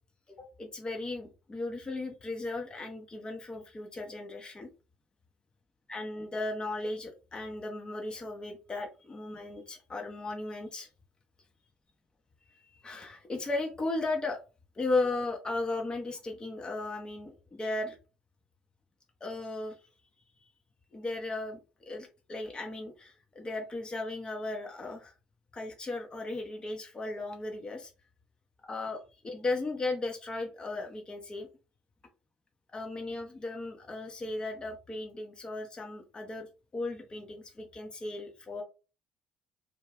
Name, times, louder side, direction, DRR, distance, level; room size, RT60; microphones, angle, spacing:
voice 1, 0.3-4.7 5.9-10.9 12.7-14.4 14.8-18.0 19.2-19.8 20.9-21.6 21.9-25.1 25.5-27.9 28.7-31.5 32.7-36.5 36.7-38.6, left 2 dB, 25° left, 2 dB, 0.6 m, -36 dB
2.3 x 2.2 x 3.3 m, 0.32 s
hypercardioid pair, 55°, 4 cm